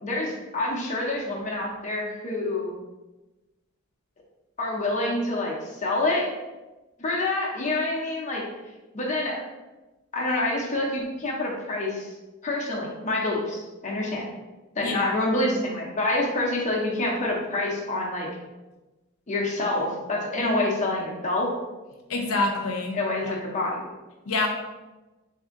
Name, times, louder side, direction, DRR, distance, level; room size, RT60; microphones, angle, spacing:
voice 1, 0.0-2.7 4.6-6.3 7.0-8.4 8.9-9.4 10.1-12.1 12.4-14.3 14.8-18.3 19.3-21.5 22.9-23.9, left 2 dB, 35° left, -3 dB, 0.7 m, -27 dB
voice 2, 14.8-15.1 22.1-22.9 23.2-23.3 24.3-24.5, left 3 dB, 90° left, 1 dB, 0.7 m, -26 dB
3.5 x 2.7 x 3.6 m, 1.1 s
head